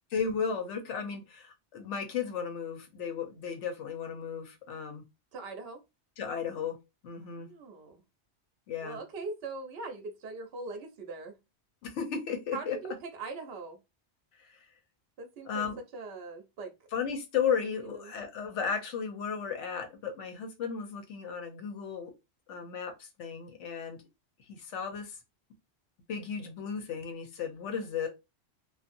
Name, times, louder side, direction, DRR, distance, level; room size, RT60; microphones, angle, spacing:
voice 1, 0.1-5.0 6.2-6.8 7.0-7.5 8.7-9.0 11.8-12.8 14.4-14.5 15.5-15.8 16.9-22.1 22.5-24.0 24.5-25.1 26.1-28.1, left 6 dB, 90° left, 1.1 m, -34 dB
voice 2, 5.3-5.8 7.3-8.0 8.8-11.4 12.5-13.8 15.2-15.6 15.9-16.7 17.8-18.1, right 3 dB, 65° right, 0.9 m, -41 dB
2.7 x 2.5 x 2.5 m
omnidirectional pair, 1.2 m